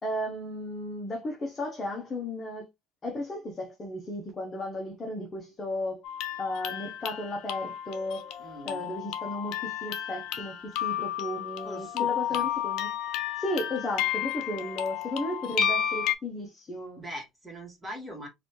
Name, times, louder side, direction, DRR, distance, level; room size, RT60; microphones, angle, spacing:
voice 1, 0.0-2.7 3.0-6.0 6.4-8.4 8.6-12.9 13.4-17.0, left 1 dB, 25° left, 1.0 m, -34 dB
sound 1, 6.0-16.1, left 9 dB, 70° left, 0.8 m, -32 dB
voice 2, 8.4-8.9 11.6-12.5 17.0-18.3, equal, 5° right, 1.8 m, -41 dB
3.9 x 2.7 x 3.2 m
cardioid pair, 120°, 0 cm